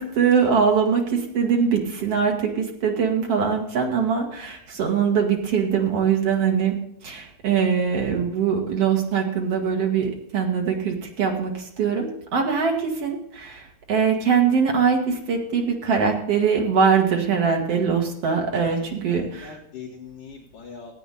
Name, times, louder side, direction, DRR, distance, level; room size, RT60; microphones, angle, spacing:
voice 1, 0.0-6.7 7.0-19.6, right 6 dB, 50° right, 2 dB, 2.0 m, -22 dB
voice 2, 18.6-21.0, left 6 dB, 60° left, -1 dB, 2.8 m, -42 dB
15.5 x 9.1 x 4.1 m, 0.74 s
omnidirectional pair, 4.8 m